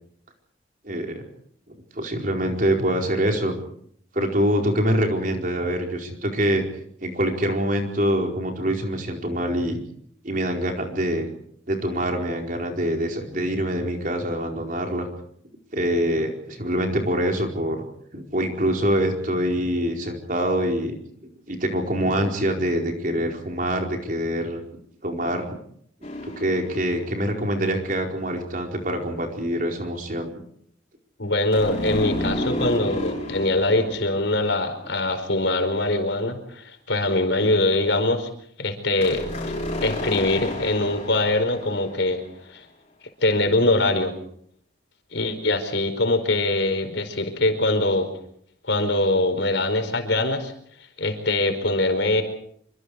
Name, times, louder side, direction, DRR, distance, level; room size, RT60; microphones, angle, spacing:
voice 1, 0.8-1.2 1.9-3.6 4.1-6.6 7.0-9.8 10.2-11.3 11.7-15.1 15.7-17.8 18.1-21.0 21.5-24.6 25.0-25.4 26.2-30.4, equal, 45° right, 2 dB, 4.6 m, -25 dB
sound 1, 26.0-27.6 31.5-35.2 39.0-42.3, left 1 dB, 35° left, 7.0 m, -32 dB
voice 2, 31.2-38.3 38.6-39.3 39.8-42.2 42.5-42.6 43.2-44.2 45.1-48.1 48.7-50.5 51.0-52.2, left 2 dB, 70° left, 7 dB, 4.8 m, -23 dB
26.5 x 25.0 x 4.9 m, 0.65 s
head